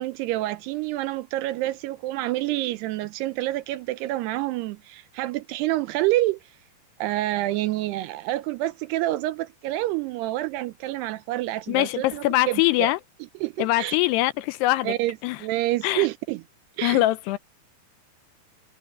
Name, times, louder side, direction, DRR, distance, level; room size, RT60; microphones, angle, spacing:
voice 1, 0.0-6.4 7.0-12.9 13.4-14.0 14.8-16.4 16.8-17.0, right 16 dB, 80° right, 2.5 m, -28 dB
voice 2, 11.7-13.0 13.6-15.0 15.2-15.4 15.8-16.1 16.8-17.4, left 17 dB, 80° left, 2.5 m, -22 dB
omnidirectional pair, 5.1 m